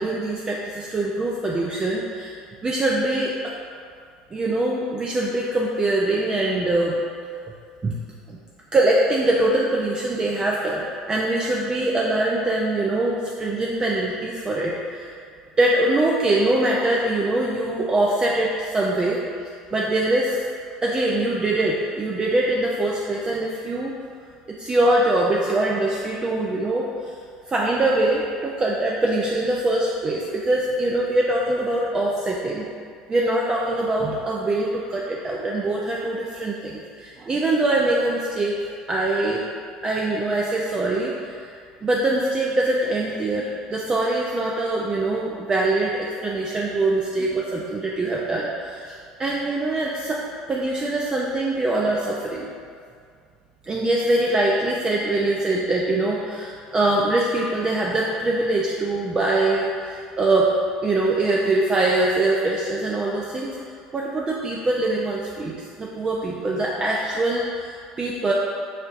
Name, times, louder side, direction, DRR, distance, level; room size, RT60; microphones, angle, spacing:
voice 1, 0.0-2.3 2.6-3.5 4.3-7.0 7.8-8.0 8.3-8.4 8.7-15.1 15.6-19.2 19.7-20.5 20.8-23.9 24.5-27.1 27.5-32.7 33.1-39.4 39.8-50.2 50.5-52.5 53.6-60.5 60.8-63.5 63.9-68.3, right 2 dB, 25° right, -3 dB, 0.4 m, -23 dB
4.2 x 3.9 x 2.4 m, 2.2 s
hypercardioid pair, 80°, 3 cm